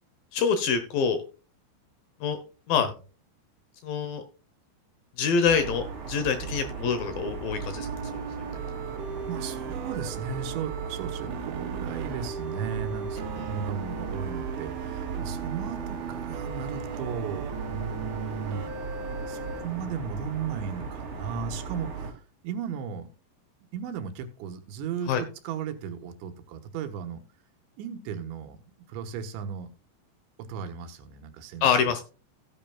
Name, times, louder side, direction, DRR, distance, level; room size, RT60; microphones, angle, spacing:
voice 1, 0.3-1.2 2.2-2.4 2.7-2.9 3.8-4.2 5.2-8.2 25.1-25.2 31.6-32.0, left 6 dB, 70° left, 9 dB, 2.4 m, -25 dB
sound 1, 5.4-22.1, right 5 dB, 40° right, 2.5 m, -37 dB
sound 2, 7.7-19.6, right 6 dB, 70° right, 2.5 m, -38 dB
voice 2, 9.3-18.6 19.3-23.1 23.7-25.1 25.5-27.2 27.8-29.7 30.5-31.7, right 7 dB, 90° right, 8 dB, 3.5 m, -36 dB
16.0 x 8.9 x 2.3 m, 0.35 s
omnidirectional pair, 5.1 m